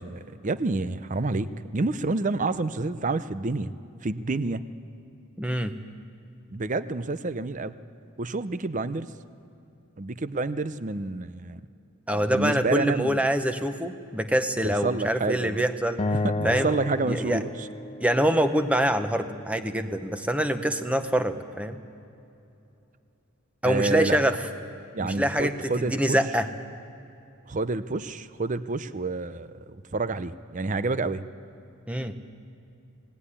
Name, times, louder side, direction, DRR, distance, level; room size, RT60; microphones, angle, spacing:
voice 1, 0.0-3.7 4.0-4.6 6.5-7.8 8.2-9.1 10.0-11.6 12.1-13.2 14.6-15.6 16.1-17.7 23.6-24.2 24.9-26.2 27.5-31.2, right 3 dB, 35° right, 13 dB, 0.6 m, -29 dB
voice 2, 5.4-5.7 12.1-16.0 16.4-16.7 17.1-17.4 18.0-21.8 23.6-24.4 25.0-26.5 31.9-32.2, right 1 dB, 5° right, 8 dB, 0.9 m, -25 dB
Acoustic guitar, 16.0-19.2, left 2 dB, 25° left, 0.4 m, -32 dB
19.5 x 18.0 x 9.9 m, 2.8 s
head